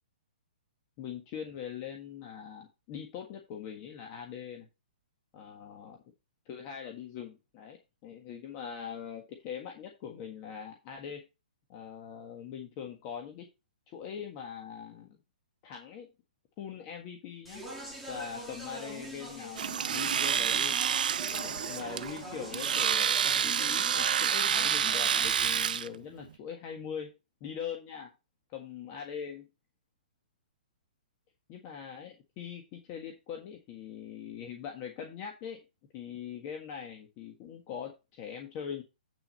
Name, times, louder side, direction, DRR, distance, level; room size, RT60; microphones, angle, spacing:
voice 1, 1.0-4.7 5.3-6.0 6.4-11.2 11.7-13.4 13.9-15.2 15.6-16.1 16.6-17.6 18.1-20.7 21.3-27.1 27.4-28.1 28.5-29.5 31.5-35.6 35.9-38.8, left 8 dB, 30° left, 2 dB, 1.6 m, -42 dB
Speech, 17.5-25.7, equal, ahead, 2.7 m, -44 dB
Domestic sounds home sounds, 19.6-25.9, right 8 dB, 65° right, 0.6 m, -28 dB
8.8 x 6.3 x 4.3 m, 0.26 s
hypercardioid pair, 160°, 5 cm